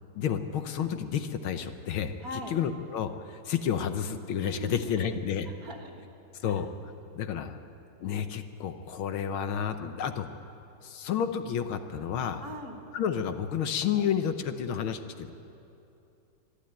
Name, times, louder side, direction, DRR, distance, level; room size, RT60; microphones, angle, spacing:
voice 1, 0.1-2.1 2.5-5.5 6.4-6.7 7.1-7.5 8.0-10.3 10.8-12.4 12.9-15.3, left 8 dB, 70° left, 8 dB, 1.7 m, -30 dB
voice 2, 2.2-2.6 4.4-5.0 5.6-6.0 6.5-6.6 12.4-12.8, left 1 dB, 45° right, 3 dB, 1.9 m, -41 dB
24.0 x 12.0 x 9.0 m, 2.8 s
omnidirectional pair, 2.4 m